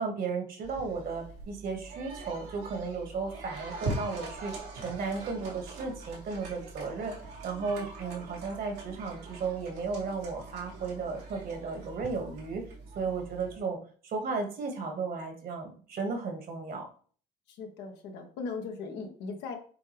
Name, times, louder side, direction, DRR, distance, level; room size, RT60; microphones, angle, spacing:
voice 1, 0.0-4.5 4.8-7.1 7.4-12.6 13.0-13.8 14.0-16.9, right 4 dB, 65° right, 4 dB, 1.9 m, -34 dB
sound 1, 0.6-13.6, right 3 dB, 90° right, 2.2 m, -42 dB
voice 2, 17.5-19.6, left 4 dB, 85° left, 3 dB, 1.3 m, -38 dB
7.5 x 3.7 x 3.4 m, 0.43 s
supercardioid pair, 80°, 17 cm